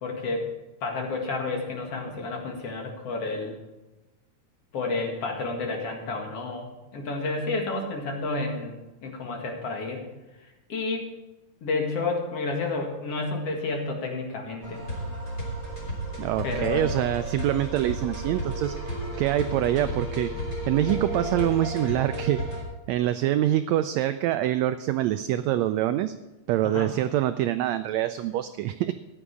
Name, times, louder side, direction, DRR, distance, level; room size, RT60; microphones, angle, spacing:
voice 1, 0.0-0.5 0.8-3.5 4.7-10.0 10.7-11.1 11.6-14.8 16.4-16.9 26.6-26.9, left 3 dB, 55° left, 2 dB, 2.8 m, -30 dB
sound 1, 14.6-22.6, right 1 dB, 20° left, 3.5 m, -33 dB
voice 2, 16.2-20.3 20.7-22.4 22.9-26.1 26.5-28.9, right 13 dB, 80° right, 11 dB, 1.6 m, -25 dB
14.0 x 10.0 x 4.8 m, 1.1 s
omnidirectional pair, 3.5 m